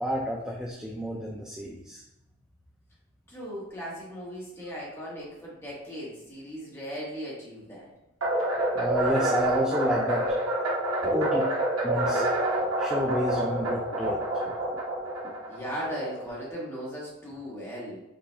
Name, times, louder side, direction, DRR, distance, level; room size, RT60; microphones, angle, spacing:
voice 1, 0.0-2.0 8.7-10.3 11.1-11.4 11.8-12.3 12.8-14.2, equal, 5° right, -3 dB, 0.4 m, -29 dB
voice 2, 3.3-7.9 11.0-11.2 13.7-14.0 14.7-14.8 15.2-18.0, equal, 10° left, -6 dB, 1.4 m, -38 dB
sound 1, 8.2-16.5, right 1 dB, 70° right, 1.0 m, -28 dB
5.2 x 2.6 x 3.3 m, 0.92 s
head